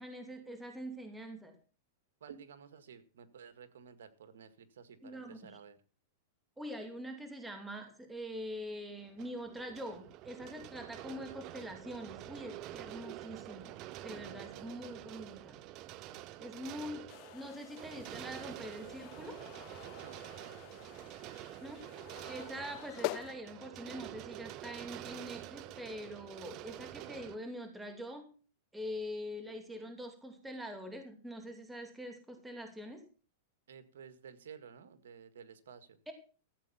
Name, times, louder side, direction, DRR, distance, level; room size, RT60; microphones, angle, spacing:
voice 1, 0.0-1.5 5.0-5.6 6.6-13.7 14.0-15.6 16.4-19.4 21.6-21.8 22.3-28.4 28.7-33.0 36.1-36.2, equal, 5° right, 5 dB, 2.6 m, -44 dB
voice 2, 2.2-5.8 14.1-15.0 16.1-16.7 20.0-20.9 33.7-36.0, right 7 dB, 85° right, 11 dB, 1.9 m, -54 dB
sound 1, 9.0-27.4, right 15 dB, 40° right, 0.8 m, -48 dB
sound 2, 17.1-23.3, left 21 dB, 45° left, 0.6 m, -46 dB
14.5 x 8.0 x 5.9 m, 0.37 s
hypercardioid pair, 140°, 0 cm